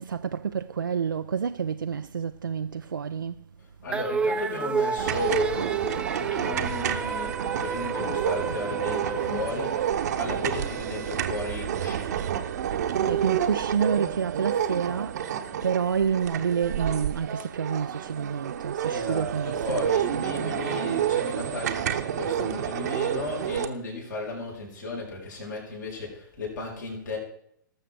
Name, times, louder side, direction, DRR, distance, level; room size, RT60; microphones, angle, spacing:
voice 1, 0.0-3.5 12.6-20.6, right 7 dB, 75° right, 0.4 m, -29 dB
voice 2, 3.8-7.3 7.6-12.3 18.9-27.2, left 2 dB, 65° left, 5.4 m, -35 dB
sound 1, 3.9-10.5, right 4 dB, 10° right, 0.4 m, -31 dB
sound 2, 5.0-23.7, right 9 dB, 55° right, 0.9 m, -29 dB
18.5 x 6.8 x 4.6 m
figure-of-eight pair, 110°, 11 cm